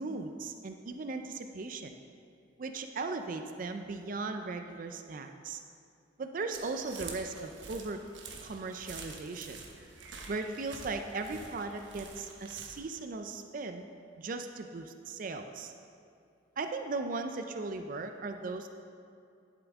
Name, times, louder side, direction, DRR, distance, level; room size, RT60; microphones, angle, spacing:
voice 1, 0.0-2.0 2.6-5.6 6.2-8.0 8.4-9.6 10.3-13.8 14.2-15.7 16.6-18.7, right 3 dB, 45° right, 7 dB, 0.4 m, -37 dB
sound 1, 6.5-12.8, right 4 dB, 80° right, 1.0 m, -47 dB
11.5 x 7.4 x 3.5 m, 2.5 s
head